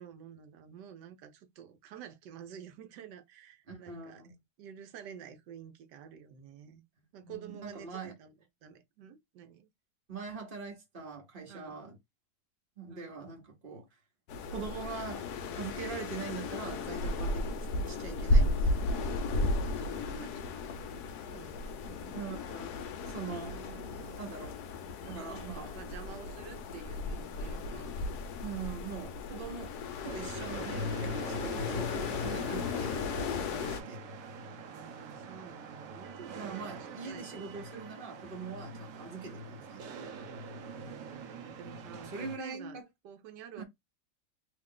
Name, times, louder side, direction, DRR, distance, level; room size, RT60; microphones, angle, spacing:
voice 1, 0.0-4.3 4.6-6.8 7.1-9.7 11.5-11.8 12.9-13.2 19.7-20.8 21.2-22.2 23.2-24.6 25.0-27.9 34.7-37.8 39.2-39.4 40.7-42.8 43.0-43.6, right 8 dB, 80° right, 1.3 m, -50 dB
voice 2, 3.7-4.3 7.2-8.1 10.1-12.0 12.8-13.9 14.5-15.3 15.5-18.9 22.1-22.7 23.1-23.6 24.2-24.5 25.1-25.7 28.4-29.8 30.0-33.0 33.3-34.0 36.3-40.2 42.0-42.9 43.6-43.7, right 5 dB, 40° right, 0.9 m, -42 dB
sound 1, 14.3-33.8, left 2 dB, 70° left, 1.1 m, -34 dB
sound 2, 30.0-42.4, right 1 dB, 65° right, 1.0 m, -42 dB
3.1 x 2.4 x 3.6 m
omnidirectional pair, 1.9 m